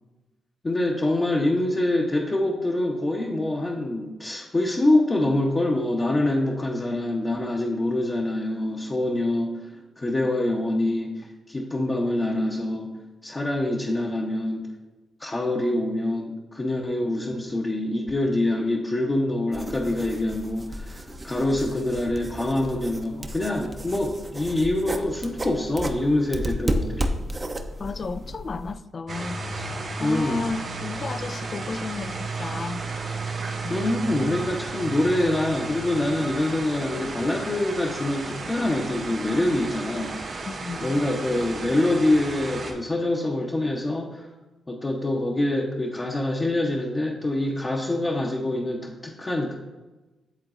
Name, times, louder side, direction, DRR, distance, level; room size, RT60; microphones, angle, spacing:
voice 1, 0.6-9.6 10.0-13.0 13.2-14.7 15.2-27.1 30.0-30.5 33.7-40.5 40.8-44.3 44.7-49.5, left 1 dB, 30° left, 0.8 m, -25 dB
sound 1, 19.5-28.7, right 1 dB, 30° right, 0.7 m, -33 dB
voice 2, 27.8-29.7 30.0-32.8 33.6-33.7 40.5-41.0, left 4 dB, 50° left, 0.3 m, -33 dB
sound 2, 29.1-42.7, right 3 dB, 65° right, 1.5 m, -33 dB
10.5 x 3.8 x 2.5 m
supercardioid pair, 60°, 0 cm